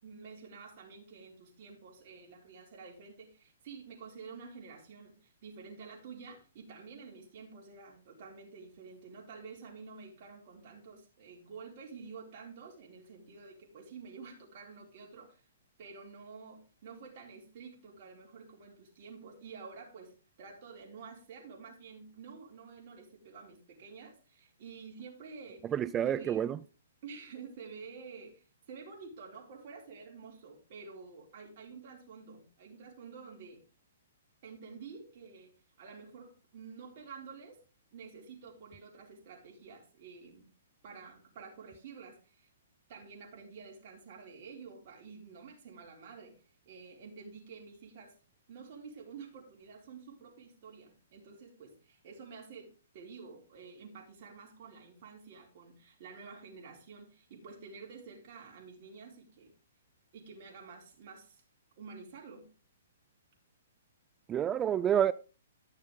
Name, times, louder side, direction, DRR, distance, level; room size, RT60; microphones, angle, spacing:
voice 1, 0.0-15.4 15.8-25.7 26.0-26.5 27.0-33.6 34.4-35.5 35.8-37.6 37.9-40.4 40.8-42.5 42.9-46.3 46.7-48.1 48.5-59.5 60.1-61.4 61.8-62.5, right 5 dB, 45° right, 4.0 m, -50 dB
voice 2, 25.7-26.6 64.3-65.1, right 9 dB, 15° right, 0.4 m, -28 dB
12.5 x 6.5 x 3.6 m
hypercardioid pair, 150°, 0 cm